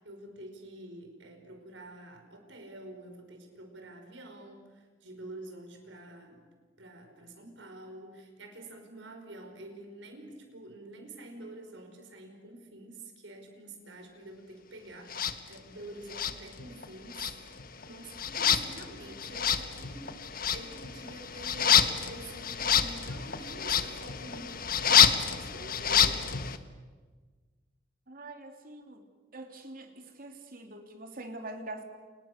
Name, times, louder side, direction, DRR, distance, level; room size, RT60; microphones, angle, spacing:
voice 1, 0.0-6.5 6.8-20.1 20.5-26.6, right 2 dB, 85° right, 5 dB, 5.5 m, -47 dB
sound 1, 15.1-15.4 16.1-16.9 17.1-26.6, left 8 dB, 50° left, 1.4 m, -28 dB
voice 2, 28.1-29.0 29.3-31.8, right 2 dB, 50° right, 4 dB, 3.3 m, -44 dB
30.0 x 29.0 x 6.8 m, 1.4 s
head